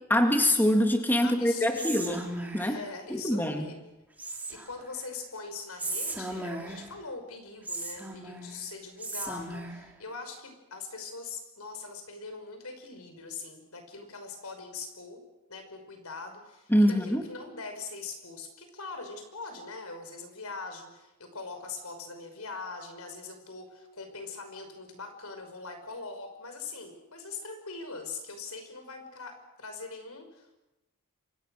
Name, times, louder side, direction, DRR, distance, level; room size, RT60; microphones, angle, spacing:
voice 1, 0.1-2.2 2.5-2.8 3.1-3.7 16.7-17.2, equal, 10° left, 4 dB, 2.2 m, -24 dB
voice 2, 1.2-2.2 2.6-3.7 4.5-15.2 15.5-30.5, left 4 dB, 85° left, 6 dB, 5.6 m, -42 dB
Whispering, 1.7-2.8 4.2-4.9 5.8-7.0 7.7-8.6 9.0-9.9, right 2 dB, 5° right, 3.2 m, -37 dB
28.0 x 25.0 x 6.5 m, 1.0 s
head